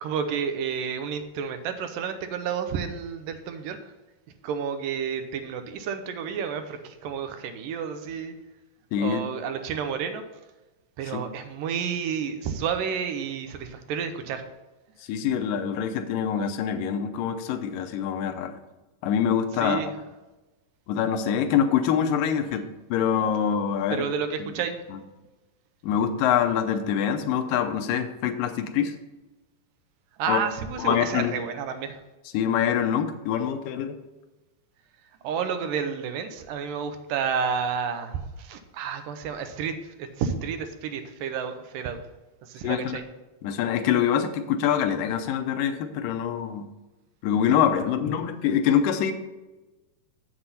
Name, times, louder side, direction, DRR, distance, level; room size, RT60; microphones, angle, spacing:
voice 1, 0.0-3.8 4.4-8.3 9.0-10.2 11.0-14.5 19.6-19.9 22.5-22.6 23.9-24.8 30.2-32.0 35.2-42.0 42.4-43.0, right 7 dB, 90° right, 8 dB, 2.5 m, -30 dB
voice 2, 8.9-9.2 11.1-11.2 15.1-18.6 19.0-19.8 20.9-24.0 24.9-25.0 25.8-29.0 30.3-30.4 30.8-31.3 32.3-34.0 42.6-43.0 43.4-46.7 47.2-49.1, left 8 dB, 85° left, 7 dB, 2.4 m, -25 dB
7.8 x 7.7 x 4.2 m, 1.1 s
omnidirectional pair, 3.8 m